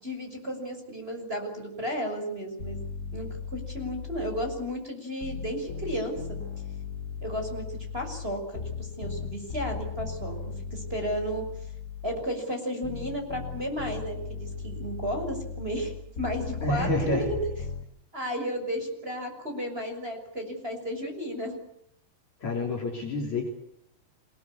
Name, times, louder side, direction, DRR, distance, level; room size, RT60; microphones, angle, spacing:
voice 1, 0.0-2.8 3.1-6.4 7.2-10.4 10.7-11.5 12.0-17.4 18.1-21.6, equal, 15° right, 3 dB, 6.1 m, -33 dB
sound 1, 2.6-4.8 5.2-12.3 12.8-17.8, left 5 dB, 65° left, 1.0 m, -37 dB
voice 2, 16.6-17.3 22.4-23.5, left 1 dB, 45° left, 1 dB, 4.4 m, -28 dB
27.0 x 20.5 x 8.6 m, 0.73 s
omnidirectional pair, 4.9 m